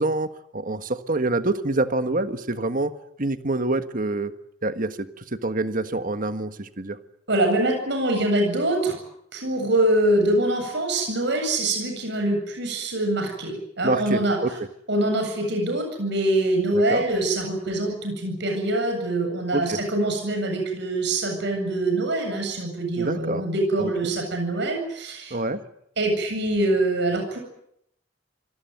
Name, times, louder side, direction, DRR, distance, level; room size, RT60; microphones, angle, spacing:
voice 1, 0.0-2.9 3.2-4.3 4.6-7.0 13.8-14.5 16.7-17.0 19.5-19.8 23.0-23.4 23.8-24.1 25.3-25.6, right 2 dB, 45° right, 10 dB, 1.6 m, -26 dB
voice 2, 7.3-9.0 9.3-14.4 14.9-25.4 26.0-27.4, right 1 dB, 65° right, 3 dB, 8.0 m, -24 dB
26.5 x 19.5 x 9.3 m, 0.75 s
head